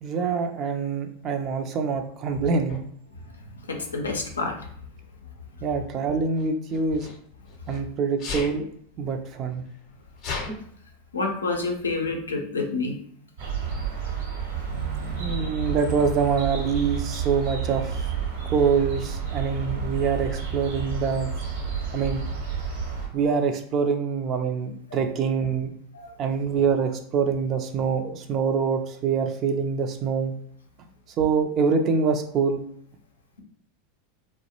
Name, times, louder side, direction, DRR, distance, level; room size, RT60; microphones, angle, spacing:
voice 1, 0.0-2.8 5.6-7.1 7.7-8.7 9.0-9.6 15.2-18.1 18.5-21.3 21.9-22.2 23.1-25.7 26.2-30.3 31.2-32.6, right 5 dB, 40° right, 6 dB, 0.4 m, -25 dB
Sneeze, 2.7-2.8 3.9-4.3 6.3-7.8 8.2-8.6 9.3-9.4 9.6-10.6, left 4 dB, 45° left, 0.6 m, -35 dB
voice 2, 3.7-4.5 11.1-13.0 14.7-15.4 25.9-26.1, left 3 dB, 90° left, 3 dB, 0.5 m, -29 dB
sound 1, 13.4-23.1, right 7 dB, 70° right, 0.9 m, -30 dB
2.3 x 2.1 x 2.8 m, 0.63 s
hypercardioid pair, 90°, 0 cm